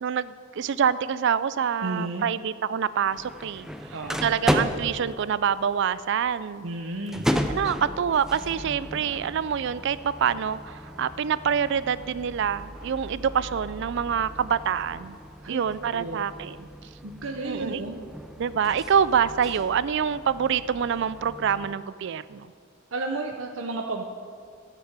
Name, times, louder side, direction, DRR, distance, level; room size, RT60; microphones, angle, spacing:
voice 1, 0.0-3.7 4.2-6.8 7.5-15.2 15.5-16.7 17.5-17.8 18.4-22.5, right 7 dB, 65° right, 16 dB, 0.4 m, -26 dB
voice 2, 1.8-2.3 3.9-4.2 6.6-7.3 15.4-15.6 15.9-16.3 17.0-18.1 22.9-24.0, right 2 dB, 85° right, 3 dB, 0.8 m, -32 dB
sound 1, 3.1-21.7, equal, 5° right, 0.5 m, -35 dB
12.0 x 6.9 x 7.3 m, 2.2 s
head